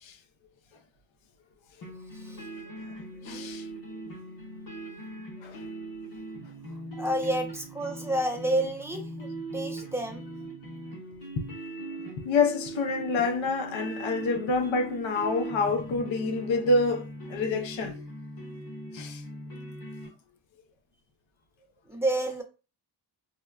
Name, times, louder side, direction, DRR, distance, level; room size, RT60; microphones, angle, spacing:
sound 1, 1.8-20.1, right 2 dB, 45° left, 1.3 m, -40 dB
voice 1, 3.2-3.7 5.4-5.6 11.4-11.5 12.2-18.0 18.9-19.2, left 3 dB, 75° left, 0.7 m, -27 dB
voice 2, 7.0-9.3 9.5-10.3 21.9-22.4, right 1 dB, 5° right, 0.5 m, -29 dB
5.1 x 2.1 x 2.3 m
wide cardioid pair, 160°, 47 cm